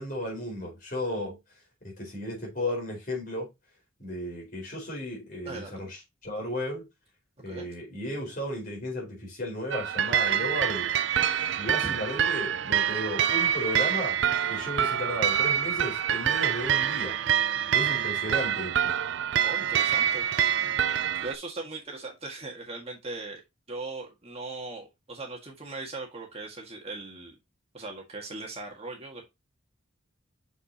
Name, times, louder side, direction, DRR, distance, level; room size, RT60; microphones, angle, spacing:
voice 1, 0.0-1.4 1.8-3.5 4.0-6.9 7.4-10.9 11.6-14.2 14.5-17.2 17.7-18.9, left 1 dB, 45° left, 4.5 m, -34 dB
voice 2, 5.5-5.9 7.4-7.7 11.8-12.0 18.3-18.4 19.4-20.3 21.2-23.4 23.7-27.4 27.7-29.2, right 3 dB, 30° right, 1.7 m, -39 dB
sound 1, 9.7-21.3, right 9 dB, 60° right, 0.4 m, -26 dB
6.7 x 6.2 x 2.8 m
head